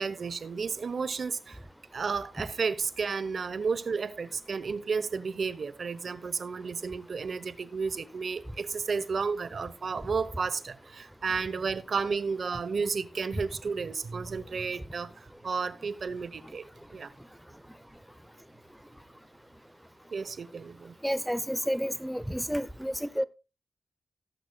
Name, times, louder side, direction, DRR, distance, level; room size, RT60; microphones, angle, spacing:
voice 1, 0.0-1.6 1.9-15.1 15.4-16.6 16.9-17.1 20.1-20.9, right 5 dB, 70° right, 0.8 m, -32 dB
voice 2, 21.0-23.2, equal, ahead, 0.6 m, -30 dB
18.0 x 7.7 x 2.2 m
cardioid pair, 65°, 0 cm